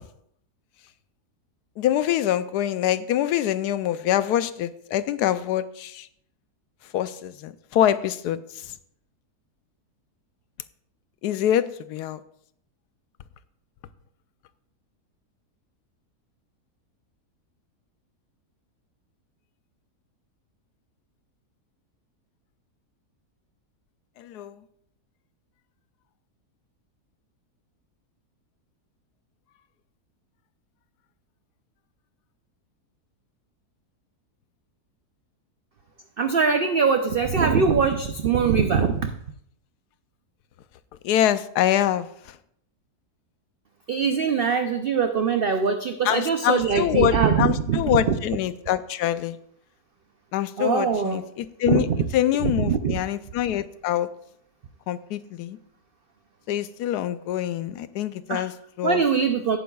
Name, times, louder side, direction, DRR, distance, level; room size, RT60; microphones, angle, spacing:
voice 1, 1.8-6.1 6.9-8.7 11.2-12.2 24.2-24.6 41.0-42.4 46.0-49.4 50.3-51.9 52.1-54.1 54.9-55.6 56.5-59.0, left 11 dB, 85° left, 14 dB, 1.1 m, -25 dB
voice 2, 36.2-39.1 43.9-48.1 50.6-51.2 51.7-52.0 52.6-53.0 58.3-58.4 58.8-59.6, right 6 dB, 75° right, 7 dB, 0.5 m, -22 dB
17.0 x 9.2 x 2.3 m, 0.70 s
omnidirectional pair, 1.7 m